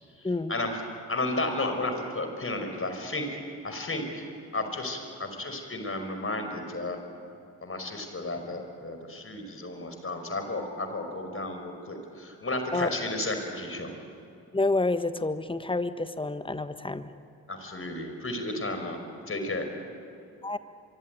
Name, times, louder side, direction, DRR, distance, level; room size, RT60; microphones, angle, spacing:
voice 1, 0.2-0.8 1.1-3.3 3.6-4.3 4.5-7.0 7.6-13.9 17.5-19.0 19.3-19.7, left 2 dB, 30° left, 6 dB, 5.3 m, -33 dB
voice 2, 14.5-17.1 20.4-20.6, left 2 dB, 10° left, 12 dB, 1.4 m, -28 dB
26.0 x 24.0 x 9.3 m, 2.5 s
figure-of-eight pair, 40°, 44 cm